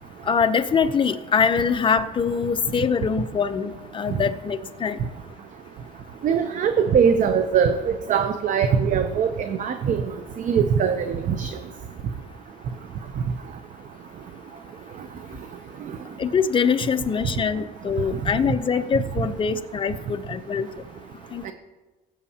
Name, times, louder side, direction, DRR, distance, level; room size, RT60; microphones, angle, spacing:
voice 1, 0.3-5.0 16.2-20.7 21.3-21.5, left 6 dB, 30° left, 9 dB, 0.7 m, -23 dB
voice 2, 6.2-10.0 10.4-11.5 21.4-21.5, right 7 dB, 50° right, 8 dB, 0.7 m, -21 dB
19.0 x 8.2 x 2.9 m, 1.2 s
cardioid pair, 110°, 17 cm